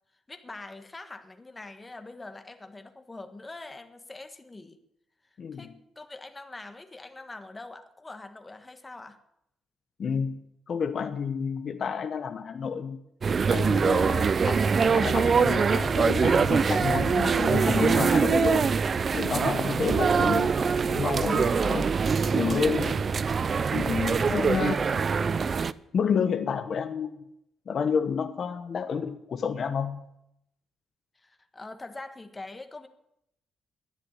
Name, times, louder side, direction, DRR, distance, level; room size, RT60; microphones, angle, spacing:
voice 1, 0.3-4.8 5.5-9.2 19.9-20.2 23.9-24.4 31.1-32.9, left 2 dB, 20° left, 7 dB, 1.6 m, -44 dB
voice 2, 5.4-5.7 10.0-10.4 10.7-13.0 13.5-18.8 19.1-21.9 22.3-23.1 23.7-24.8 25.9-27.2 27.7-30.1, left 6 dB, 50° left, 9 dB, 1.0 m, -30 dB
sound 1, 13.2-25.7, right 5 dB, 40° right, 0.5 m, -24 dB
11.5 x 10.0 x 9.7 m, 0.81 s
cardioid pair, 90°, 0 cm